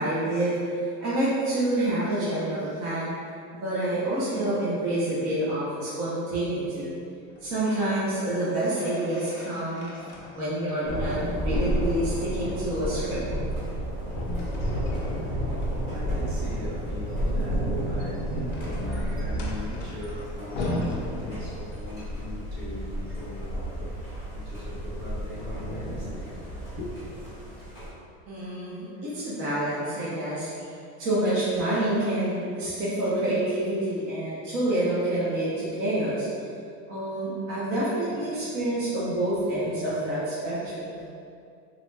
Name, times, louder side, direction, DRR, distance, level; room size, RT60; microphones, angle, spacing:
voice 1, 0.0-3.1 3.5-6.9 7.4-9.9 10.3-13.3 28.3-30.7 31.0-36.3 36.9-41.0, right 1 dB, 45° right, -10 dB, 0.8 m, -27 dB
sound 1, 7.3-7.9 8.3-10.8 11.1-12.3 14.1-15.7 17.7-21.9, left 1 dB, 30° left, 0.4 m, -37 dB
Thunder, 10.9-27.9, equal, 15° right, 0.9 m, -31 dB
voice 2, 14.7-27.1, left 1 dB, 70° right, -6 dB, 1.1 m, -40 dB
3.8 x 2.2 x 3.2 m, 2.4 s
cardioid pair, 180°, 34 cm